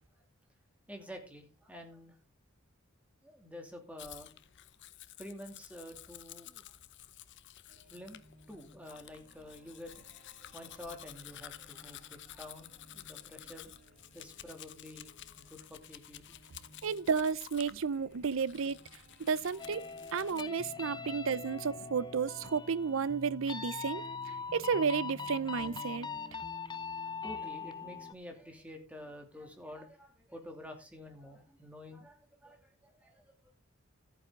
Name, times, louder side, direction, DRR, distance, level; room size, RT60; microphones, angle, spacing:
voice 1, 0.9-2.1 3.2-4.3 5.2-6.6 7.9-8.2 8.5-10.2 10.5-13.7 14.1-16.2 26.5-33.3, left 1 dB, 5° right, 2.7 m, -49 dB
Domestic sounds home sounds, 4.0-20.5, left 12 dB, 55° left, 0.7 m, -52 dB
sound 1, 7.7-25.7, right 1 dB, 40° right, 3.5 m, -62 dB
voice 2, 16.8-18.8 19.3-26.1, right 5 dB, 65° right, 0.5 m, -32 dB
sound 2, 19.6-28.1, left 5 dB, 20° left, 0.8 m, -42 dB
13.5 x 9.1 x 3.8 m
head